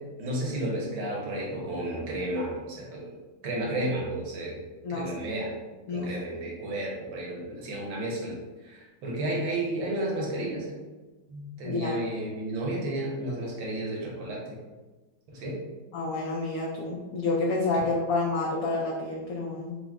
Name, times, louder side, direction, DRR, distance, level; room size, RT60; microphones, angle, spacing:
voice 1, 0.2-3.1 3.4-4.6 4.9-5.5 5.9-8.4 8.6-10.6 11.3-14.6 15.3-15.6 17.7-17.8, right 1 dB, 75° right, -3 dB, 1.7 m, -32 dB
voice 2, 11.6-12.0 15.9-19.8, left 3 dB, 75° left, -3 dB, 0.8 m, -29 dB
4.8 x 2.0 x 3.5 m, 1.2 s
omnidirectional pair, 2.1 m